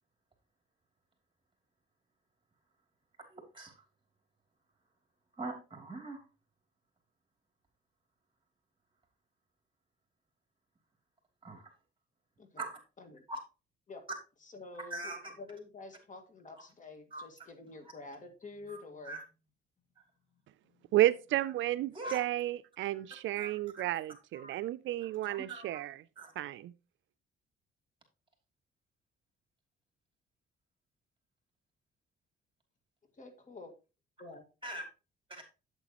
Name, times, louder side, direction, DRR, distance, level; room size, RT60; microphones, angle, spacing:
voice 1, 3.3-3.8 5.4-6.2 11.4-11.7 12.6-12.8 13.3-13.4 14.9-15.3 17.1-17.2 18.7-18.8 19.0-19.2 21.9-22.3 23.3-23.9 24.3-24.6 25.0-25.8 26.2-26.3 34.6-34.8 35.3-35.4, right 2 dB, 25° right, 2.9 m, -42 dB
voice 2, 14.4-19.2 20.6-20.8 33.2-33.7 34.2-34.5, left 3 dB, 40° left, 1.8 m, -49 dB
voice 3, 20.9-26.0 26.4-26.7, right 15 dB, 75° right, 0.4 m, -32 dB
8.2 x 8.2 x 2.9 m
cardioid pair, 90°, 20 cm